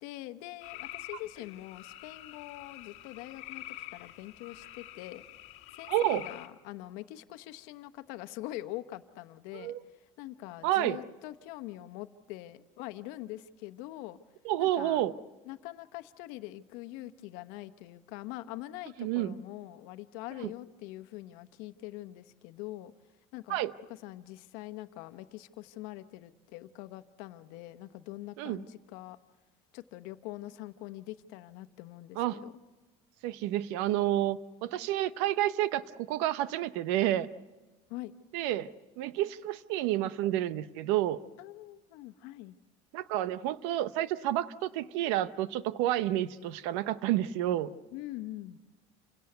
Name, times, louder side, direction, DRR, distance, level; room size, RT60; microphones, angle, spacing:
voice 1, 0.0-5.2 5.7-9.7 10.2-14.2 14.6-15.0 15.5-22.9 23.3-23.6 23.9-29.2 29.7-32.5 37.9-38.1 41.4-42.6 47.9-48.6, left 16 dB, 75° left, 11 dB, 1.1 m, -44 dB
sound 1, 0.6-6.5, left 15 dB, 50° left, 1.6 m, -46 dB
voice 2, 5.9-6.2 9.5-9.8 10.6-11.0 14.4-15.1 19.0-19.4 20.4-20.5 23.5-23.7 28.4-28.6 32.2-32.4 33.2-37.3 38.3-41.2 42.9-47.7, right 13 dB, 90° right, 16 dB, 0.8 m, -30 dB
28.0 x 17.5 x 7.9 m, 1.3 s
cardioid pair, 165°, 14 cm